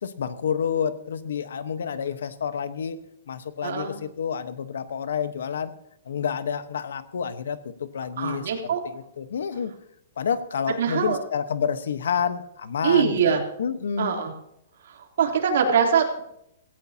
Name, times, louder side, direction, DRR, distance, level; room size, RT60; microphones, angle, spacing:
voice 1, 0.0-3.0 3.3-5.7 6.1-9.7 10.2-14.2, left 7 dB, 80° left, 11 dB, 1.2 m, -29 dB
voice 2, 3.6-3.9 8.2-8.8 10.7-11.2 12.8-13.4 14.0-14.3 15.2-16.2, right 7 dB, 60° right, 1 dB, 3.3 m, -22 dB
17.0 x 16.5 x 2.9 m, 0.77 s
hypercardioid pair, 170°, 0 cm